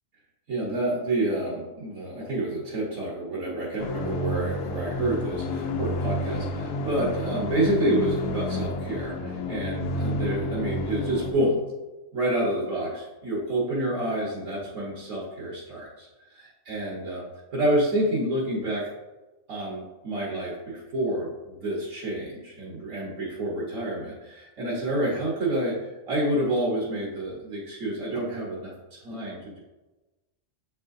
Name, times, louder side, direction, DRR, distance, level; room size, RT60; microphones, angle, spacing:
voice 1, 0.5-11.6 12.1-17.2 17.5-18.9 19.5-29.6, right 1 dB, 80° right, -4 dB, 1.7 m, -28 dB
sound 1, 3.8-11.3, left 1 dB, 65° left, 0.8 m, -30 dB
7.1 x 5.3 x 2.7 m, 1.1 s
omnidirectional pair, 1.4 m